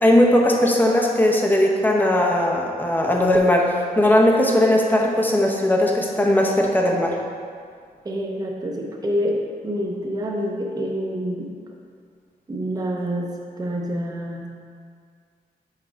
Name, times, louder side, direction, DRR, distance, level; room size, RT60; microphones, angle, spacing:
voice 1, 0.0-7.2, left 1 dB, 10° left, -1 dB, 0.8 m, -18 dB
voice 2, 8.0-11.5 12.5-13.3 13.6-14.5, equal, 25° right, -1 dB, 0.8 m, -27 dB
5.7 x 4.7 x 5.1 m, 2.1 s
wide cardioid pair, 145°, 16 cm